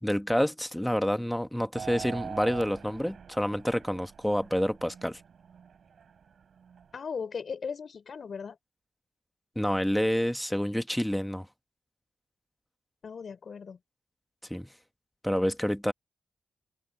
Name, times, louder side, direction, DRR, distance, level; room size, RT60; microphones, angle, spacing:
voice 1, 0.0-5.2 9.5-11.5 14.5-14.7 15.2-15.9, equal, 5° left, 1.5 m, -28 dB
sound 1, 1.7-6.9, right 7 dB, 75° right, 6.3 m, -44 dB
voice 2, 6.9-8.6 13.0-13.8, left 6 dB, 60° left, 4.1 m, -37 dB
open air
cardioid pair, 90°, 0 cm